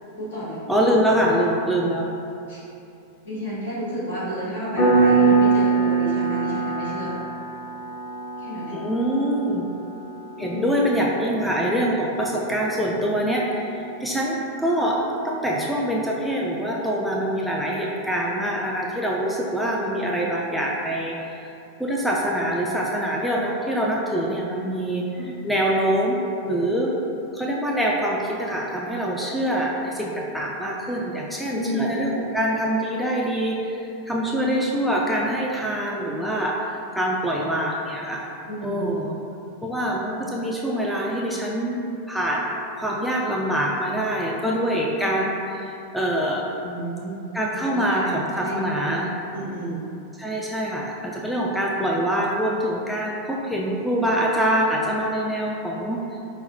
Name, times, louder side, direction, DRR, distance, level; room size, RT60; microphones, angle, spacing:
voice 1, 0.2-0.9 2.5-2.7 3.2-7.2 8.4-8.8 10.4-10.8 25.2-25.3 31.5-31.9 38.5-38.9 40.2-40.3 44.3-44.4 46.6-47.3 47.6-49.0 49.3-49.8, right 1 dB, 65° left, -9 dB, 1.3 m, -31 dB
voice 2, 0.7-2.1 8.7-9.6 10.4-21.5 21.8-26.2 26.4-26.9 27.3-38.3 38.6-39.1 39.6-46.4 47.3-49.1 50.2-56.2, equal, ahead, -3 dB, 0.3 m, -25 dB
Piano, 4.8-15.2, right 4 dB, 35° left, 1.3 m, -25 dB
5.5 x 2.1 x 2.6 m, 2.8 s
figure-of-eight pair, 90°, 0 cm